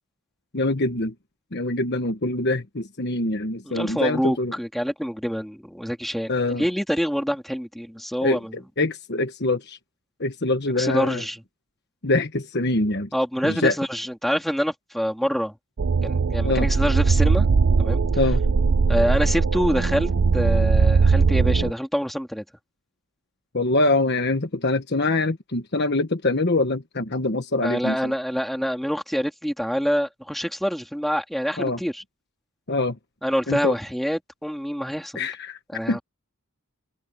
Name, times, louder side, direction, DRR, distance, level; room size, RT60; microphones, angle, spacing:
voice 1, 0.5-1.1 1.5-4.5 6.3-6.6 8.2-9.8 10.2-11.2 12.0-13.1 13.4-13.7 16.4-16.7 18.2-18.4 23.5-28.1 31.6-31.8 32.7-33.0 33.5-33.7 35.1-35.6 35.9-36.0, left 2 dB, 50° left, 1.3 m, -24 dB
voice 2, 3.6-6.3 6.6-8.5 10.8-11.4 13.1-15.5 16.0-17.5 17.8-18.0 18.9-22.4 27.6-32.0 33.2-35.3 35.7-36.0, equal, ahead, 3.2 m, -26 dB
sound 1, 15.8-21.7, right 4 dB, 55° right, 0.5 m, -20 dB
head